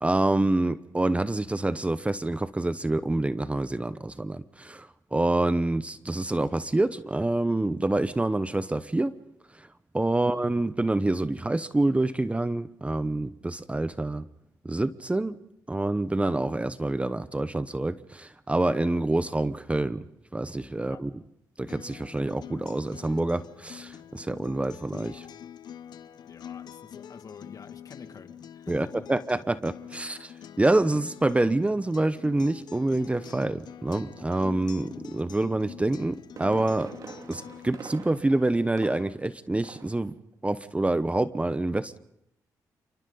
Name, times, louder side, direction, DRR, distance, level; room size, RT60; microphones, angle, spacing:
voice 1, 0.0-9.1 9.9-14.2 14.6-15.4 15.7-20.1 20.3-21.1 21.6-25.2 28.7-30.3 30.6-36.9 37.3-40.1 40.4-42.0, right 2 dB, 15° right, 14 dB, 0.9 m, -27 dB
Acoustic guitar, 21.7-37.7, left 9 dB, 70° left, 0.8 m, -46 dB
voice 2, 26.3-28.9, left 5 dB, 50° left, 7 dB, 2.3 m, -47 dB
Fireworks, 36.1-39.3 39.6-40.0 40.3-40.4, right 5 dB, 55° right, 2.2 m, -44 dB
28.0 x 24.5 x 3.9 m, 0.78 s
cardioid pair, 65°, 7 cm